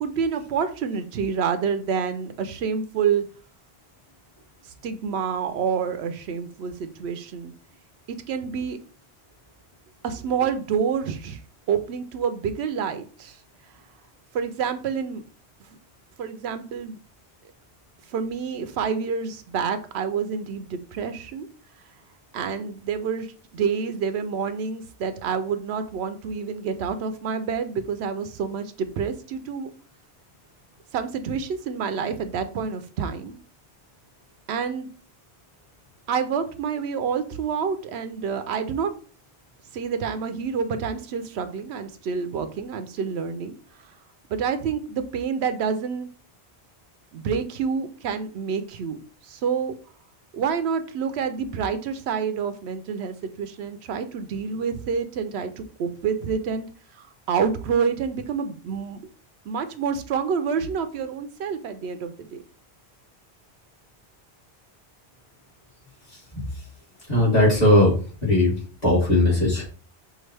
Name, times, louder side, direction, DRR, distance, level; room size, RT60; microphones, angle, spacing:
voice 1, 0.0-3.2 4.8-7.5 8.1-8.8 10.0-11.4 11.7-13.4 14.3-15.2 16.2-17.0 18.1-21.5 22.3-29.7 30.9-33.4 34.5-34.9 36.1-38.9 39.7-44.0 44.3-46.1 47.1-49.0 49.2-49.7 50.3-56.7 56.9-59.1 59.5-62.4, right 6 dB, 85° right, 10 dB, 0.8 m, -28 dB
voice 2, 66.1-66.7 67.1-69.8, left 1 dB, 40° left, -7 dB, 2.5 m, -20 dB
5.6 x 2.5 x 3.3 m, 0.40 s
omnidirectional pair, 1.1 m